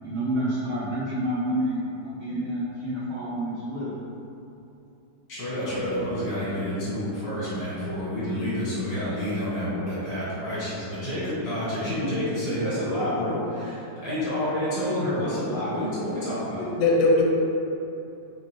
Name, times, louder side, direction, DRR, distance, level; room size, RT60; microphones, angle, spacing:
voice 1, 0.0-3.9, equal, 80° right, -7 dB, 0.6 m, -29 dB
voice 2, 5.3-16.6, equal, 65° left, -11 dB, 2.1 m, -28 dB
voice 3, 16.3-17.2, left 2 dB, 85° left, -2 dB, 1.3 m, -21 dB
4.4 x 2.5 x 3.1 m, 2.8 s
omnidirectional pair, 1.9 m